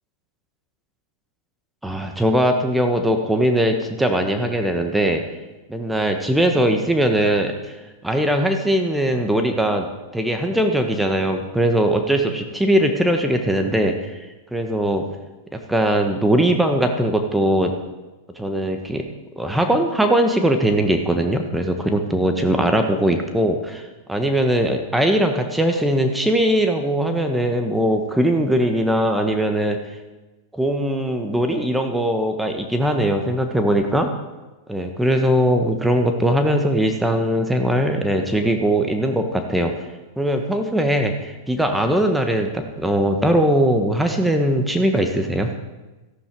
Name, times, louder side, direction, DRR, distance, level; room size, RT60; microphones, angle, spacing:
voice 1, 1.8-5.2 5.7-7.7 8.0-9.9 10.1-14.2 14.5-15.0 15.5-17.7 18.4-19.0 19.4-29.8 30.5-34.1 34.7-39.7 40.2-45.5, right 1 dB, 5° right, 5 dB, 1.3 m, -20 dB
13.5 x 11.5 x 4.7 m, 1.1 s
hypercardioid pair, 110°, 0 cm